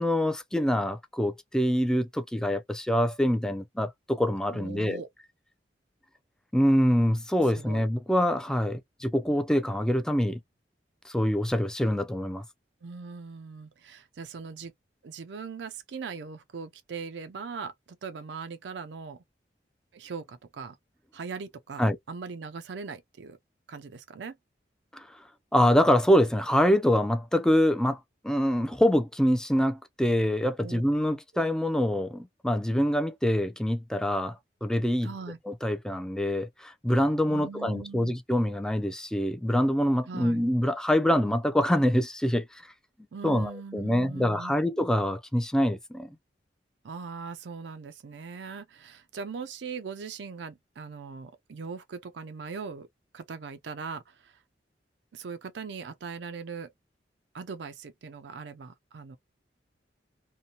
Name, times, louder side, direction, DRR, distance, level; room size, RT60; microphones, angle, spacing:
voice 1, 0.0-5.0 6.5-10.4 11.1-12.4 21.8-22.0 24.9-25.0 25.5-28.0 28.2-35.1 35.5-42.5 43.2-46.1, equal, 5° left, 0.3 m, -25 dB
voice 2, 4.5-5.1 7.5-7.8 12.8-14.7 15.0-19.2 19.9-20.8 21.1-23.4 23.7-24.4 30.6-30.8 31.3-31.4 35.0-35.4 37.3-38.1 40.1-40.4 43.1-44.6 46.8-52.9 53.1-54.4 55.1-56.7 57.3-59.2, right 5 dB, 80° right, 0.4 m, -40 dB
2.6 x 2.1 x 2.8 m
head